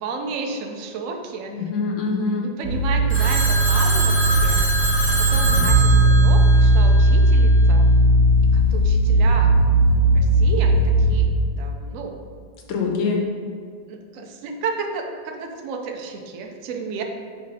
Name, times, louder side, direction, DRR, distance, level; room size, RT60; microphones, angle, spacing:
voice 1, 0.0-1.6 2.4-4.7 5.2-7.9 8.5-9.5 10.1-11.3 11.6-12.2 13.9-17.0, right 4 dB, 85° right, 3 dB, 0.7 m, -32 dB
voice 2, 1.5-2.5 12.7-13.2, left 4 dB, 75° left, 1 dB, 1.6 m, -24 dB
sound 1, 2.6-11.2, right 1 dB, 30° right, 1.2 m, -17 dB
Telephone, 3.1-7.3, right 1 dB, 15° left, 0.4 m, -25 dB
5.5 x 3.6 x 5.4 m, 2.1 s
omnidirectional pair, 2.2 m